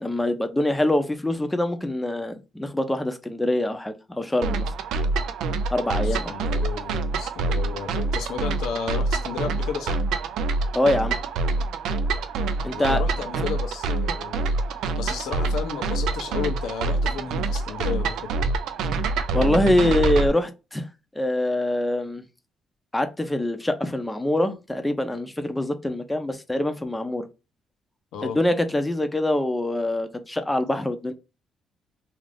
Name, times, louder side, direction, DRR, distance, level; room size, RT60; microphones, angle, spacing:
voice 1, 0.0-4.7 5.7-6.5 10.7-11.2 12.6-13.0 19.3-20.9 21.2-22.2 22.9-27.2 28.2-31.1, left 1 dB, 10° left, 0.5 m, -24 dB
sound 1, 4.4-20.3, right 3 dB, 85° right, 0.3 m, -26 dB
voice 2, 6.0-10.0 12.7-14.5 15.0-18.3 28.1-28.4, left 7 dB, 85° left, 0.6 m, -33 dB
2.5 x 2.4 x 3.3 m
cardioid pair, 90°, 0 cm